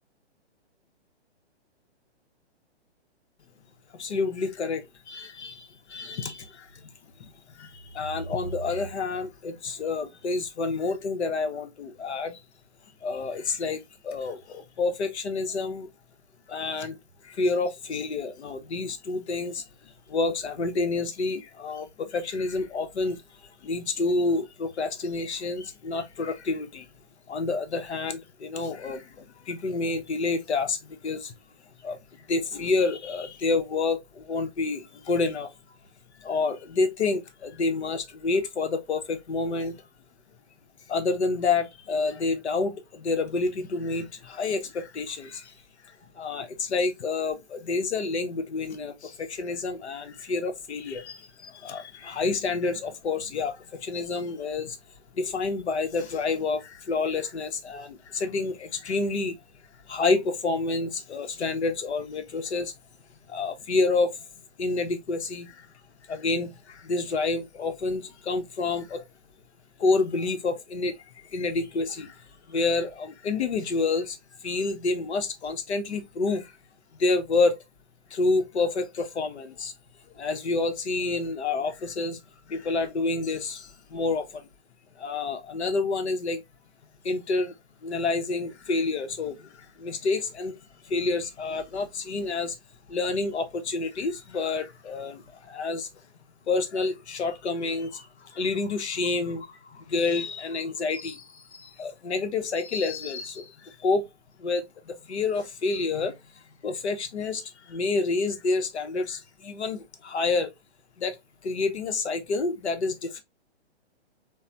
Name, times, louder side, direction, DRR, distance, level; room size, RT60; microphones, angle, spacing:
voice 1, 3.9-6.8 7.2-12.4 13.0-15.9 16.5-17.0 17.2-23.2 23.6-26.9 27.3-31.3 31.8-35.5 36.2-39.8 40.9-45.5 45.8-54.8 55.1-59.4 59.9-62.7 63.3-64.2 64.6-65.7 66.1-69.0 69.8-76.5 77.0-77.6 78.1-79.7 80.2-82.2 82.5-84.4 85.0-86.4 87.0-87.5 87.8-90.6 90.8-92.6 92.9-95.9 96.5-104.0 104.4-106.2 106.6-110.5 111.0-111.2 111.4-113.2, left 3 dB, 75° left, 0.7 m, -29 dB
3.1 x 2.1 x 2.5 m
hypercardioid pair, 130°, 34 cm